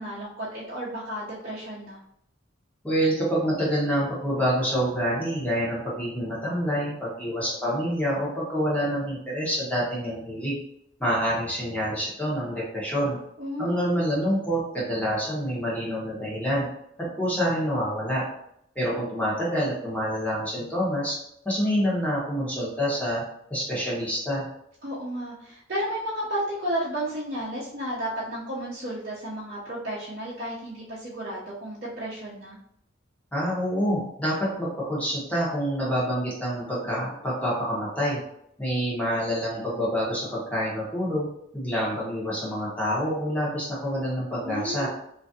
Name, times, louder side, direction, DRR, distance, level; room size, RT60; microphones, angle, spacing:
voice 1, 0.0-2.0 13.4-14.0 24.8-32.6 44.4-44.9, right 1 dB, 50° right, -8 dB, 0.6 m, -33 dB
voice 2, 2.8-10.6 11.0-13.2 13.6-16.7 17.0-18.2 18.7-21.1 21.4-23.2 23.5-24.4 33.3-38.2 38.6-41.3 41.5-44.9, equal, 5° left, -7 dB, 1.0 m, -27 dB
3.1 x 2.5 x 2.7 m, 0.75 s
head